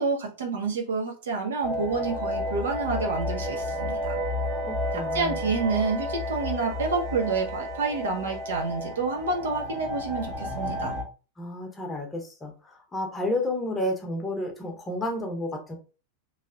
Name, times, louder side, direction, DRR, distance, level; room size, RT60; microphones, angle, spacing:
voice 1, 0.0-4.2 4.9-10.9, right 4 dB, 65° right, 1 dB, 0.8 m, -28 dB
sound 1, 1.6-11.0, left 1 dB, 30° right, 0.8 m, -31 dB
voice 2, 4.6-5.4 11.4-15.8, left 1 dB, 15° left, 2 dB, 0.8 m, -31 dB
3.2 x 2.8 x 2.4 m, 0.34 s
figure-of-eight pair, 90°, 0 cm